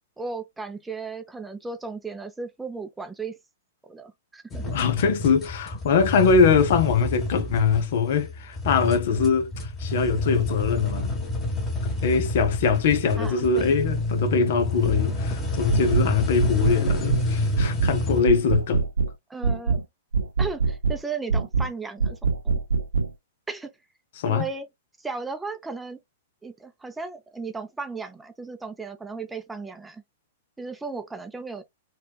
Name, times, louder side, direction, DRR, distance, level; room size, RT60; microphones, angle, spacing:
voice 1, 0.2-3.3 3.9-4.8 13.2-13.7 19.3-19.8 20.4-22.2 22.4-22.6 23.5-23.7 24.3-24.7 25.0-26.0 26.4-30.0 30.6-31.6, right 4 dB, 10° right, 0.5 m, -35 dB
sound 1, 4.5-18.2, left 1 dB, 20° left, 1.2 m, -29 dB
voice 2, 4.6-11.2 11.8-18.9 24.2-24.5, left 5 dB, 60° left, 0.7 m, -22 dB
sound 2, 15.7-16.1 16.4-17.3 17.6-18.0 18.3-19.1 19.4-19.8 20.1-21.0 21.3-21.7 22.0-23.1, right 4 dB, 90° right, 0.4 m, -23 dB
4.4 x 2.3 x 2.3 m
hypercardioid pair, 115°, 0 cm